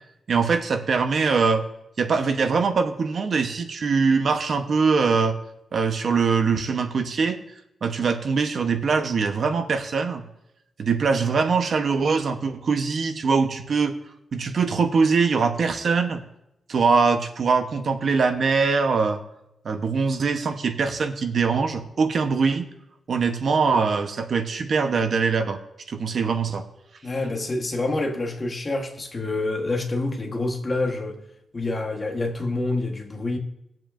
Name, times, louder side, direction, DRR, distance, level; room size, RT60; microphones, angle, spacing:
voice 1, 0.3-1.6 2.0-5.4 5.7-7.4 7.8-10.2 10.8-14.0 14.3-16.2 16.7-19.2 19.6-22.7 23.1-25.6 25.9-26.6, right 5 dB, 50° right, 0.9 m, -22 dB
voice 2, 27.0-31.2 31.5-33.4, left 2 dB, 25° left, 1.2 m, -27 dB
19.0 x 7.6 x 2.5 m
wide cardioid pair, 170°, 0 cm